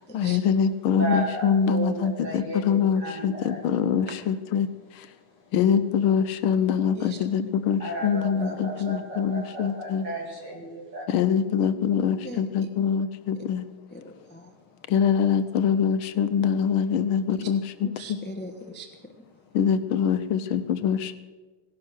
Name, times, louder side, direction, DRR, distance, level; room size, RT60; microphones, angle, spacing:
voice 1, 0.1-4.7 5.0-5.1 5.5-10.1 11.1-13.7 14.9-18.2 19.5-21.2, left 7 dB, 80° left, 12 dB, 1.6 m, -24 dB
voice 2, 1.0-4.1 7.8-11.1, right 1 dB, 55° right, -1 dB, 2.8 m, -34 dB
voice 3, 12.2-12.7 13.9-14.5 17.3-17.5 17.8-18.9, equal, 10° left, 6 dB, 0.6 m, -40 dB
17.5 x 11.5 x 6.4 m, 1.3 s
omnidirectional pair, 2.3 m